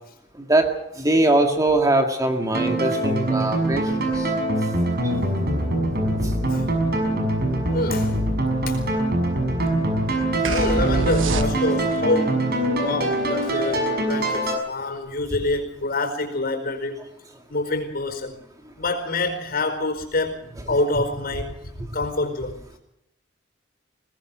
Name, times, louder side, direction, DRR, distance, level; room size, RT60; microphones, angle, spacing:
voice 1, 0.4-0.7 1.0-4.3, right 2 dB, 20° right, 4 dB, 2.0 m, -21 dB
sound 1, 2.5-14.5, right 1 dB, 55° right, 6.2 m, -23 dB
voice 2, 7.7-8.1 8.7-8.8 10.5-17.1 17.5-18.4 18.8-20.4 20.7-21.6 21.9-22.6, left 2 dB, 50° left, 6 dB, 4.8 m, -26 dB
sound 2, 10.5-12.0, right 3 dB, 80° right, 1.1 m, -25 dB
22.5 x 19.0 x 6.3 m, 0.79 s
head